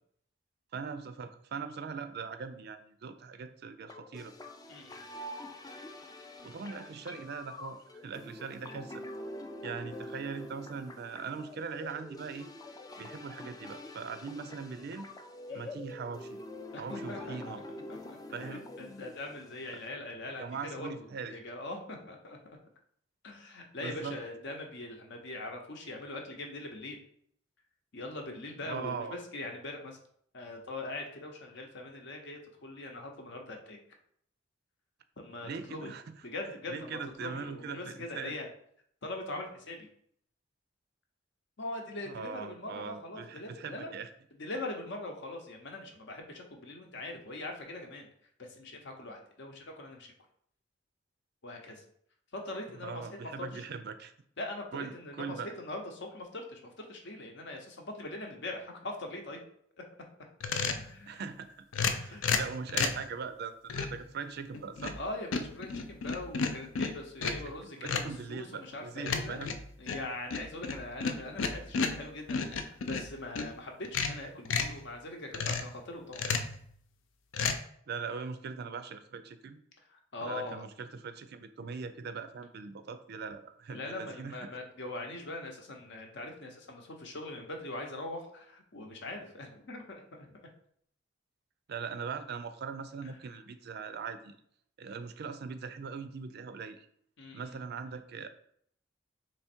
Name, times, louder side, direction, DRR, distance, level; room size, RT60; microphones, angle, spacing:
voice 1, 0.7-4.3 6.4-9.0 9.6-12.5 13.0-15.1 15.5-16.4 16.8-17.6 18.3-18.7 19.7-19.8 20.4-21.4 23.8-24.2 28.6-29.2 35.4-36.0 36.7-38.3 42.1-44.1 52.8-54.1 54.7-55.5 61.1-65.0 67.2-67.5 67.8-69.5 77.9-79.6 80.2-84.5 91.7-94.4 94.8-96.9 97.3-98.3, right 5 dB, 55° right, 10 dB, 0.4 m, -41 dB
sound 1, 3.9-19.9, left 1 dB, 20° left, 0.3 m, -45 dB
voice 2, 4.7-5.0 15.5-15.7 16.7-17.8 18.1-22.6 23.2-27.0 27.9-30.0 30.3-33.8 35.2-35.9 36.2-38.5 39.0-39.9 41.6-44.0 44.3-48.1 48.4-50.1 51.4-51.8 52.3-53.6 54.4-59.4 60.8-61.2 62.1-62.4 64.9-69.5 69.8-76.2 79.9-80.6 83.7-90.3 93.0-93.1 97.2-97.6, left 2 dB, 65° left, 3 dB, 0.8 m, -42 dB
sound 2, 60.4-60.9 61.7-63.1 63.7-64.0 64.5-65.0 65.3-67.5 67.9-68.2 69.1-73.5 73.8-74.8 75.3-75.8 76.1-76.6 77.3-77.6, left 5 dB, 90° left, 0.5 m, -32 dB
3.5 x 3.1 x 4.4 m, 0.65 s
head